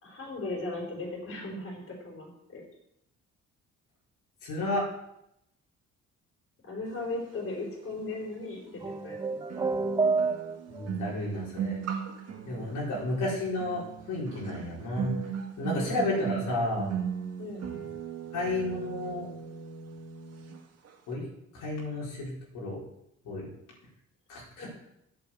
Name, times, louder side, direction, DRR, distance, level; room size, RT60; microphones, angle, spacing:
voice 1, 0.0-2.6 6.6-9.4 12.4-12.7 15.7-16.2 17.4-17.6 24.6-24.7, left 2 dB, 45° left, -1 dB, 4.4 m, -38 dB
voice 2, 4.4-4.8 10.7-11.8 12.4-13.8 14.1-15.1 15.6-16.9 18.3-19.3 21.1-21.2 21.5-22.8 23.2-23.5 24.3-24.7, left 1 dB, 85° left, -5 dB, 4.7 m, -32 dB
sound 1, 8.1-8.2 9.5-20.6 20.8-21.1, right 7 dB, 55° right, 1.9 m, -38 dB
sound 2, 8.8-10.9, right 4 dB, 15° right, 0.5 m, -28 dB
8.5 x 7.6 x 7.5 m, 0.80 s
cardioid pair, 90°, 30 cm